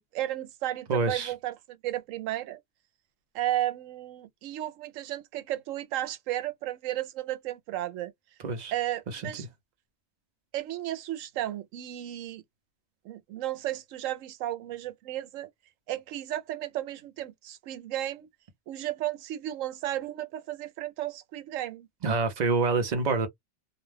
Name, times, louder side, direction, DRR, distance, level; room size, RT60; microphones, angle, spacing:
voice 1, 0.0-2.6 3.3-8.1 8.7-9.5 10.5-12.4 13.0-15.5 15.9-18.3 18.7-21.9, right 13 dB, 90° right, 1.0 m, -34 dB
voice 2, 0.9-1.3 8.4-8.7 9.1-9.5 22.0-23.3, right 4 dB, 45° right, 0.6 m, -27 dB
2.4 x 2.2 x 3.2 m
omnidirectional pair, 1.3 m